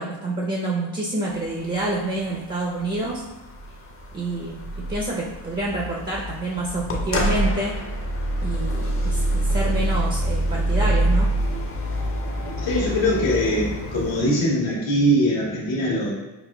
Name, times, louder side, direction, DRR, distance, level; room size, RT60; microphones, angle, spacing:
voice 1, 0.0-3.2 4.1-7.7 8.4-11.3, right 2 dB, 20° right, -3 dB, 0.7 m, -27 dB
sound 1, 1.3-14.3, right 1 dB, 25° left, 0.7 m, -26 dB
voice 2, 12.6-16.1, equal, 65° left, -5 dB, 1.3 m, -22 dB
5.8 x 2.1 x 2.3 m, 1.1 s
supercardioid pair, 75°, 50 cm